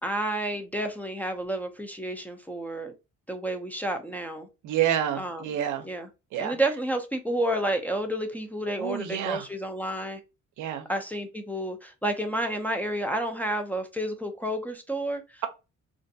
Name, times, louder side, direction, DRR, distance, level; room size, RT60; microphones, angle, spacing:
voice 1, 0.0-2.9 3.3-4.5 5.2-5.5 5.8-6.1 6.4-10.2 10.9-15.4, right 1 dB, 5° left, 0.4 m, -30 dB
voice 2, 4.6-5.9 6.3-6.5 8.8-9.5 10.6-10.9, right 11 dB, 80° right, 0.6 m, -28 dB
2.5 x 2.2 x 2.6 m
cardioid pair, 90°, 30 cm